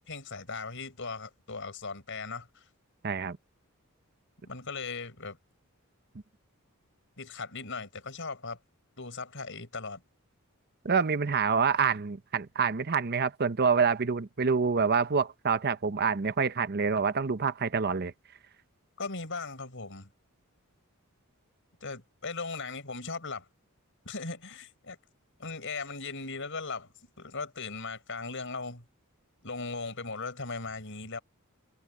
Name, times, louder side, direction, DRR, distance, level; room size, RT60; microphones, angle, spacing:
voice 1, 0.0-2.6 4.4-5.4 7.2-8.6 9.0-10.0 19.0-20.1 21.8-23.5 24.1-25.0 25.4-26.9 27.2-28.8 29.4-31.2, left 4 dB, 60° left, 6.8 m, -38 dB
voice 2, 3.0-3.4 10.8-18.1, right 5 dB, 45° right, 0.7 m, -27 dB
head